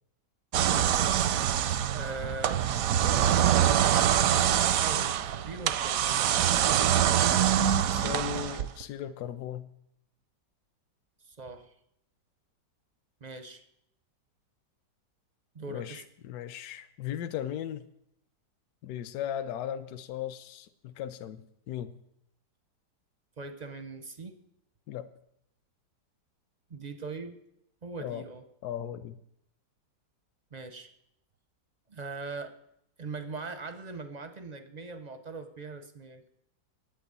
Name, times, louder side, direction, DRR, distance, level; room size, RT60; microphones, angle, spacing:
sound 1, 0.5-8.8, right 10 dB, 70° right, 0.8 m, -25 dB
voice 1, 1.9-2.6 3.0-6.6 11.2-11.7 13.2-13.6 15.5-16.0 23.4-24.4 26.7-27.4 27.8-28.4 30.5-30.9 31.9-32.5 33.0-36.3, right 3 dB, 50° right, 8 dB, 0.5 m, -41 dB
voice 2, 7.9-9.7 15.7-17.8 18.8-21.9 24.9-25.1 28.0-28.2 28.6-29.2, left 10 dB, 70° left, 9 dB, 1.0 m, -37 dB
9.0 x 8.2 x 9.3 m, 0.78 s
omnidirectional pair, 1.9 m